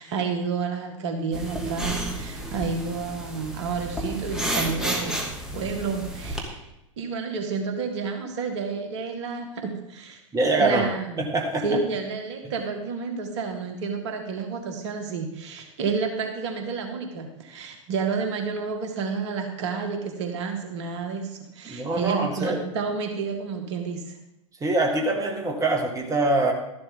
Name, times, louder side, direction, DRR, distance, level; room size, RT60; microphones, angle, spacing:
voice 1, 0.0-6.6 7.0-10.2 10.6-11.3 11.6-24.2, right 5 dB, 60° right, 4 dB, 1.8 m, -30 dB
sound 1, 1.3-6.4, right 1 dB, 5° right, 2.4 m, -31 dB
voice 2, 10.3-10.9 11.2-11.8 21.7-22.6 24.6-26.5, right 2 dB, 20° right, 3 dB, 2.0 m, -24 dB
13.0 x 11.5 x 3.8 m, 0.88 s
figure-of-eight pair, 95°, 17 cm